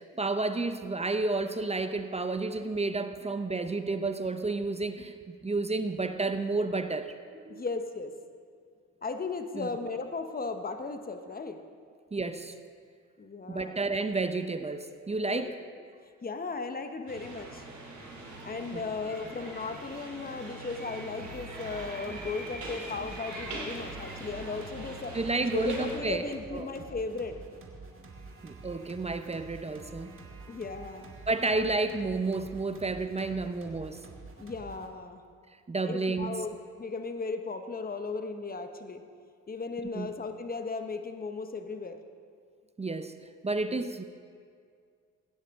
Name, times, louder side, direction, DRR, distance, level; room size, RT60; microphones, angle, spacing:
voice 1, 0.0-7.6 9.5-9.7 12.1-12.5 13.5-15.5 18.7-18.8 25.1-26.3 26.5-26.7 28.4-30.2 31.3-34.0 35.7-36.4 39.9-40.1 42.8-43.2 43.4-44.0, right 3 dB, 20° right, 9 dB, 0.7 m, -31 dB
voice 2, 7.5-8.1 9.0-11.6 13.2-13.8 15.2-15.5 16.2-17.7 18.4-25.2 25.5-27.4 30.5-31.1 34.4-35.2 35.8-39.0 39.5-42.0 43.7-43.9, left 4 dB, 30° left, 7 dB, 1.1 m, -36 dB
sound 1, 17.1-26.0, right 2 dB, 65° right, 3.2 m, -43 dB
sound 2, 19.1-24.6, right 1 dB, ahead, 1.7 m, -49 dB
sound 3, 21.2-34.9, right 3 dB, 40° right, 1.8 m, -48 dB
16.0 x 9.9 x 3.7 m, 2.2 s
supercardioid pair, 60°, 32 cm